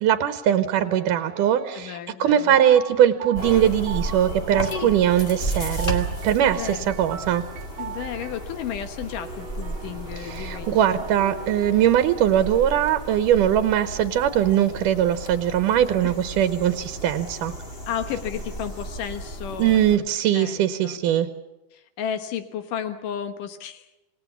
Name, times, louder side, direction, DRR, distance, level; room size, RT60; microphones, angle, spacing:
voice 1, 0.0-7.4 10.2-17.5 19.6-21.3, right 10 dB, 85° right, 10 dB, 2.6 m, -21 dB
sound 1, 0.8-1.8 2.3-5.0 5.8-8.4 9.2-11.8 12.5-12.9, right 7 dB, 65° right, 2.1 m, -39 dB
voice 2, 1.7-2.5 4.6-4.9 6.4-6.9 7.8-11.0 16.0-16.1 17.9-20.0 20.3-21.0 21.7-23.9, left 9 dB, 85° left, 8 dB, 2.8 m, -33 dB
sound 2, 3.3-20.0, right 1 dB, 20° left, 1.6 m, -34 dB
28.0 x 18.5 x 7.1 m, 0.99 s
omnidirectional pair, 3.6 m